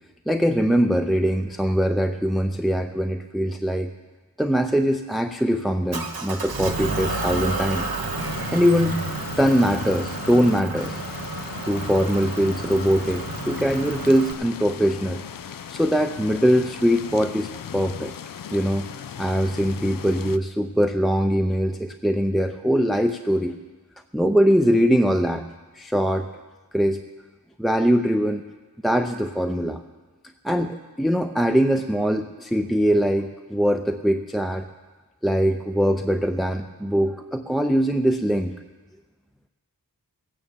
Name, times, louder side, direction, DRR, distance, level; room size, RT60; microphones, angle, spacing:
voice 1, 0.3-3.9 4.4-7.9 8.5-8.9 9.4-11.0 11.7-15.2 15.7-18.1 18.5-23.6 24.1-25.4 25.7-26.3 26.7-27.0 27.6-28.4 28.8-29.8 30.4-34.6 35.2-38.5, equal, ahead, 6 dB, 0.5 m, -22 dB
Motor vehicle (road) / Engine, 5.9-14.3, right 3 dB, 90° right, 1.4 m, -31 dB
sound 1, 8.2-20.4, left 8 dB, 65° left, 0.5 m, -38 dB
17.0 x 9.0 x 7.3 m, 1.3 s
wide cardioid pair, 70°, 36 cm